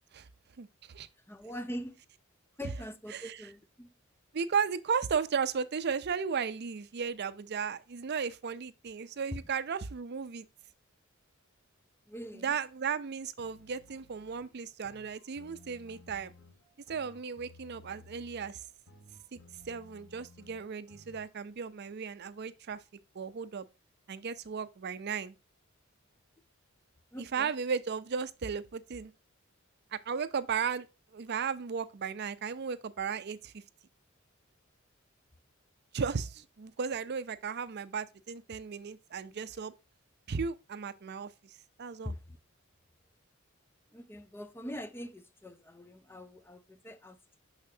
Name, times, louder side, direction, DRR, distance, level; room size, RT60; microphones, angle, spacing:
voice 1, 0.6-1.1 3.1-3.4 4.3-10.4 12.3-16.3 16.9-18.6 19.3-19.4 19.7-22.8 23.1-23.6 24.1-25.3 27.2-29.1 29.9-30.9 31.1-33.6 35.9-39.7 40.3-42.1, right 6 dB, 55° right, 0.5 m, -35 dB
voice 2, 1.3-2.0 2.6-3.9 12.1-12.6 27.1-27.5 42.0-42.4 43.9-47.4, equal, 10° left, 0.5 m, -43 dB
sound 1, 13.4-21.3, left 2 dB, 80° left, 1.8 m, -57 dB
6.9 x 5.7 x 2.7 m
head